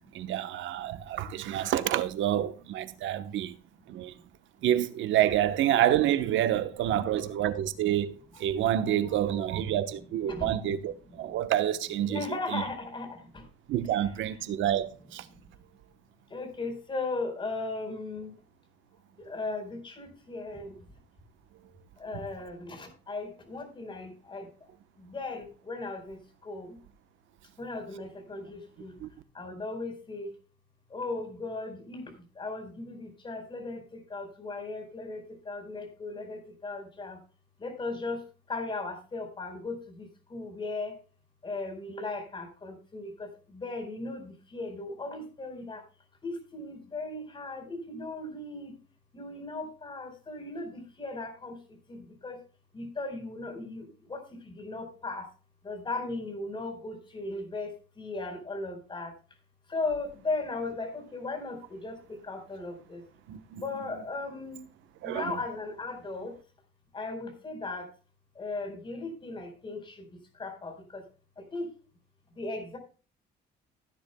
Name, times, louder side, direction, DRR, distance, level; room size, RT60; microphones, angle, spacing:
voice 1, 0.1-3.5 3.9-4.1 4.6-8.1 8.4-12.6 13.7-15.2 29.0-29.1 63.3-63.6 65.0-65.4, right 11 dB, 80° right, 1.1 m, -28 dB
voice 2, 9.1-9.7 10.3-10.5 12.1-13.4 16.3-18.3 19.2-20.7 22.0-24.5 25.0-26.2 26.4-26.7 27.6-28.9 29.3-30.3 30.9-32.0 32.4-33.8 34.1-35.2 35.5-37.2 37.6-38.2 38.5-40.1 40.3-40.9 41.4-43.3 43.5-45.8 46.2-48.7 49.1-51.6 51.9-52.4 52.7-55.2 55.6-57.7 58.0-59.1 59.7-62.0 62.3-63.0 63.6-64.6 65.0-66.3 66.9-67.8 68.4-69.9 70.4-71.0 71.5-71.7 72.4-72.8, left 3 dB, 25° left, 4.5 m, -37 dB
16.5 x 10.5 x 2.3 m
cardioid pair, 140°, 19 cm